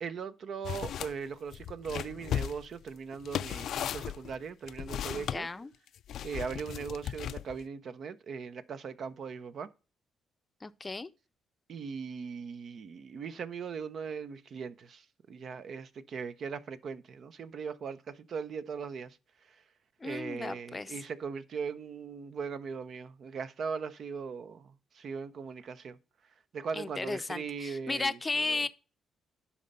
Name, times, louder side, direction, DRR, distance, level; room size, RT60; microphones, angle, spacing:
voice 1, 0.0-5.5 6.2-9.7 11.7-19.2 20.0-26.0 26.5-28.2 28.5-28.6, right 6 dB, 60° right, 0.6 m, -39 dB
sound 1, 0.6-1.1 1.5-5.4 6.1-7.6, left 10 dB, 70° left, 0.3 m, -36 dB
voice 2, 5.1-5.7 10.6-11.1 20.0-21.0 26.7-28.7, left 3 dB, 25° left, 0.5 m, -35 dB
11.0 x 4.2 x 5.3 m
cardioid pair, 90°, 0 cm